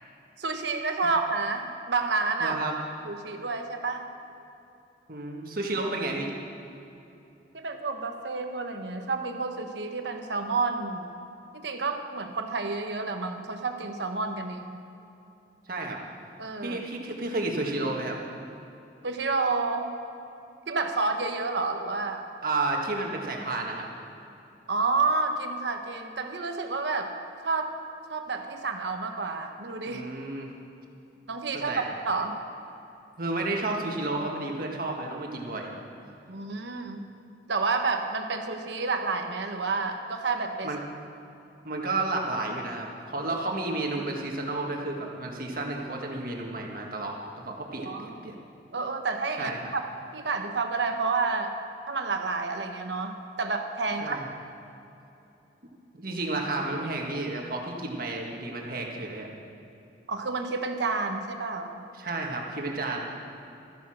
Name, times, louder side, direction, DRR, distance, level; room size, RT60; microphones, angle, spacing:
voice 1, 0.4-2.6 3.0-4.1 7.5-11.1 11.5-14.8 16.4-16.8 19.0-19.9 20.7-22.2 24.7-27.1 27.4-27.7 28.1-30.0 31.3-31.7 32.1-32.4 36.3-37.0 37.5-40.7 47.8-48.4 48.7-49.8 50.1-51.5 51.9-54.2 60.1-61.8, right 4 dB, 75° right, 5 dB, 1.1 m, -29 dB
voice 2, 2.4-2.7 5.1-6.3 15.7-16.0 16.6-18.2 22.4-23.9 29.9-30.5 31.7-31.8 33.2-35.7 40.6-40.8 41.6-48.3 49.4-49.7 54.0-54.2 56.0-59.3 61.9-63.2, right 2 dB, 50° right, 0 dB, 1.7 m, -31 dB
13.5 x 10.5 x 6.4 m, 2.8 s
head